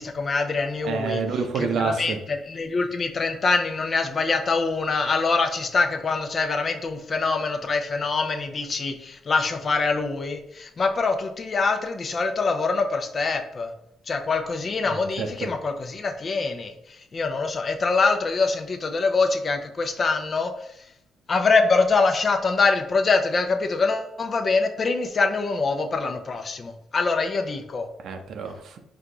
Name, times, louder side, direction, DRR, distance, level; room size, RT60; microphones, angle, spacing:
voice 1, 0.0-1.2 1.5-13.7 14.1-16.7 17.1-20.5 21.3-27.9, left 4 dB, 40° left, 6 dB, 0.6 m, -24 dB
voice 2, 0.8-2.2 14.9-15.3 28.0-28.8, right 5 dB, 70° right, 6 dB, 0.6 m, -28 dB
4.5 x 2.3 x 3.8 m, 0.78 s
cardioid pair, 90°, 0 cm